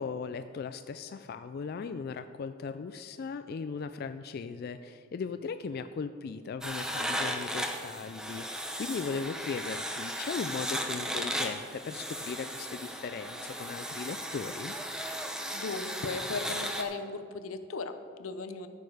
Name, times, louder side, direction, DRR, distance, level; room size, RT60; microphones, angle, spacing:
voice 1, 0.0-14.7, left 5 dB, 50° left, 10 dB, 0.3 m, -38 dB
sound 1, 6.6-16.8, equal, 5° right, 0.6 m, -36 dB
voice 2, 15.5-18.7, left 3 dB, 90° left, 9 dB, 0.7 m, -37 dB
13.5 x 6.6 x 4.8 m, 2.2 s
head